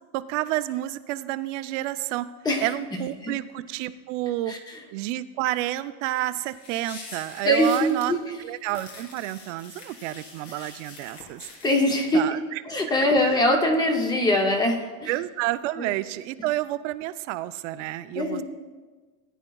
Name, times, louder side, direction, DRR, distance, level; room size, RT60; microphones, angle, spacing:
voice 1, 0.1-2.3 2.6-4.6 4.9-8.1 8.4-11.5 12.1-12.6 13.3-13.4 15.1-18.4, right 15 dB, 70° right, 12 dB, 0.6 m, -30 dB
sound 1, 6.4-8.1 8.7-11.8, left 3 dB, 85° left, 3.7 m, -44 dB
voice 2, 7.4-8.2 10.6-10.7 11.6-12.2 12.7-15.1 15.8-15.9 18.1-18.4, left 1 dB, 10° left, 4 dB, 0.6 m, -22 dB
17.5 x 10.0 x 2.3 m, 1.4 s
cardioid pair, 175°, 38 cm